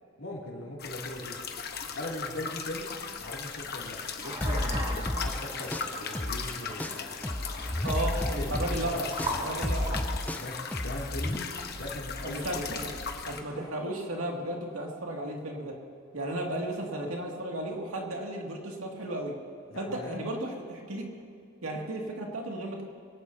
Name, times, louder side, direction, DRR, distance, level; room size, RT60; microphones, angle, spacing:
voice 1, 0.2-1.5 1.9-2.9 3.2-7.0 7.8-8.0 8.4-9.1 10.3-12.4 19.7-20.2, left 1 dB, 80° left, -4 dB, 2.7 m, -40 dB
sound 1, 0.8-13.4, left 5 dB, 50° left, 1.0 m, -38 dB
sound 2, 4.2-10.0, equal, 30° right, 3.9 m, -39 dB
sound 3, 4.4-6.5 6.8-11.4, left 1 dB, 5° left, 0.3 m, -32 dB
voice 2, 7.8-10.0 12.2-12.9 13.2-15.8 16.1-19.3 19.8-21.1 21.6-22.8, right 1 dB, 90° right, -1 dB, 2.3 m, -34 dB
22.5 x 18.0 x 2.8 m, 2.3 s
head